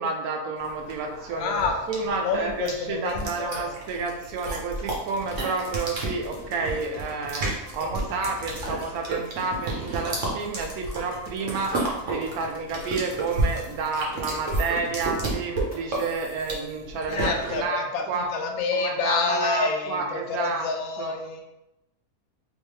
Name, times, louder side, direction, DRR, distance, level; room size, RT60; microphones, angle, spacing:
voice 1, 0.0-18.3 18.7-20.7 21.0-21.1, right 4 dB, 80° right, 3 dB, 1.1 m, -30 dB
sound 1, 0.6-17.7, right 2 dB, 60° right, 1.2 m, -31 dB
voice 2, 1.3-3.8 17.1-21.4, left 4 dB, 80° left, 3 dB, 1.0 m, -28 dB
sound 2, 4.8-17.0, left 3 dB, 55° left, 0.9 m, -47 dB
3.5 x 3.1 x 3.2 m, 0.92 s
omnidirectional pair, 1.5 m